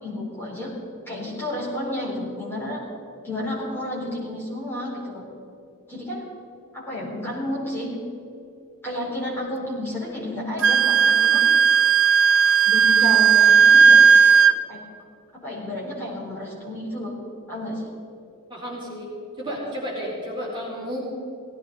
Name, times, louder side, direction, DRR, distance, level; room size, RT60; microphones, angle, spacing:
voice 1, 0.0-0.7 1.1-2.8 3.2-5.3 5.9-6.3 6.7-8.0 8.8-11.5 12.6-14.0 14.7-14.8 15.3-17.2 17.5-17.9, left 1 dB, 10° left, -6 dB, 4.6 m, -31 dB
Wind instrument woodwind instrument, 10.6-14.5, right 6 dB, 60° right, 0.7 m, -15 dB
voice 2, 18.5-19.1 19.4-21.1, equal, 20° right, -6 dB, 4.1 m, -32 dB
18.5 x 16.0 x 4.2 m, 2.7 s
head